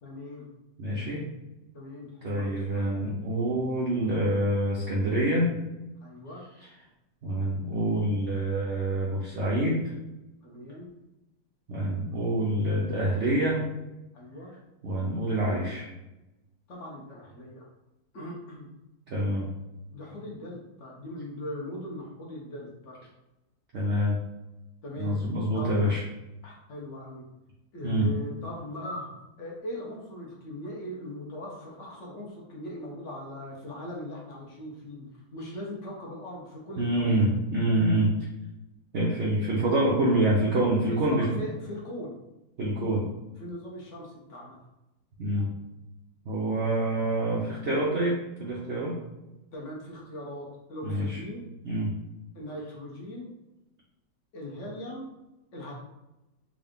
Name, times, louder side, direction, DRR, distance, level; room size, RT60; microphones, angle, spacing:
voice 1, 0.0-0.5 1.7-3.1 6.0-6.4 10.4-10.9 14.1-14.5 16.7-17.7 18.1-18.7 19.9-23.0 24.8-25.2 25.5-26.0 26.4-27.2 27.7-37.1 40.9-42.1 43.4-44.7 49.5-51.4 52.3-53.3 54.3-55.1 55.5-55.7, left 1 dB, 50° left, -2 dB, 1.0 m, -40 dB
voice 2, 0.8-1.2 2.2-5.5 7.2-9.8 11.7-13.6 14.8-15.9 19.1-19.5 23.7-24.2 25.0-26.0 27.8-28.1 36.8-38.1 38.9-41.3 42.6-43.0 45.2-45.5 46.3-49.0 50.8-51.2 51.6-51.9, right 1 dB, 70° right, -5 dB, 0.6 m, -26 dB
3.7 x 2.4 x 3.5 m, 0.97 s
omnidirectional pair, 1.9 m